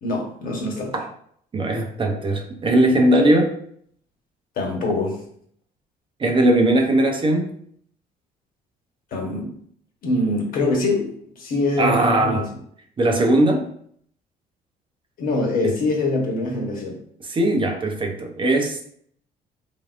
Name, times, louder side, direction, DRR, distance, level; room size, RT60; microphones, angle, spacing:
voice 1, 0.0-1.0 4.6-5.2 9.1-9.5 10.0-12.5 15.2-17.0, left 2 dB, 60° left, 1 dB, 1.2 m, -24 dB
voice 2, 1.5-3.5 6.2-7.5 11.8-12.5 13.0-13.7 17.2-18.9, right 1 dB, 30° right, 3 dB, 0.6 m, -19 dB
3.7 x 3.4 x 2.5 m, 0.62 s
cardioid pair, 110°, 17 cm